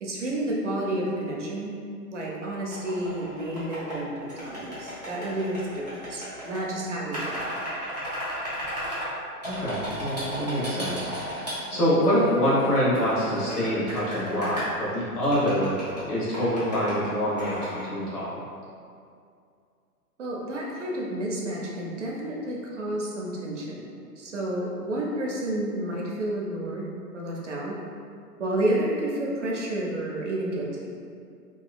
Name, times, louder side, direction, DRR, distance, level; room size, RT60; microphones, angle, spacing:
voice 1, 0.0-1.7 2.1-7.5 11.7-11.8 20.2-26.8 27.1-27.8 28.4-30.9, right 1 dB, 50° right, -3 dB, 0.5 m, -30 dB
sound 1, 2.7-4.0 4.3-6.6 7.1-9.1 9.4-11.5 12.0-14.6 15.2-16.0 16.3-17.1 17.4-17.9, equal, 30° left, 0.4 m, -35 dB
voice 2, 9.4-11.1 11.3-15.7 16.1-17.6 17.8-18.3, equal, 70° left, -8 dB, 1.4 m, -25 dB
2.9 x 2.3 x 2.4 m, 2.4 s
hypercardioid pair, 170°, 47 cm